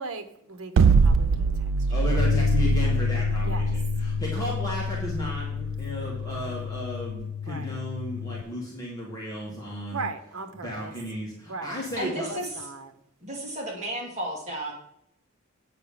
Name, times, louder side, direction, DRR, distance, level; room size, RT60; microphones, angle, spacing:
voice 1, 0.0-1.5 2.8-2.9 3.4-3.7 4.4-4.5 6.0-6.7 7.5-7.7 9.9-10.9 11.5-11.8 12.3-12.9, right 3 dB, 90° right, 9 dB, 1.0 m, -38 dB
sound 1, 0.8-6.9, right 4 dB, 65° right, 0.4 m, -23 dB
voice 2, 1.9-10.0 10.5-12.3, left 1 dB, 15° left, -4 dB, 2.0 m, -34 dB
Bass guitar, 2.2-8.4, left 7 dB, 80° left, 0.3 m, -29 dB
voice 3, 12.0-12.7 13.2-14.7, right 1 dB, 35° right, -1 dB, 2.0 m, -33 dB
8.6 x 4.9 x 6.9 m, 0.75 s
head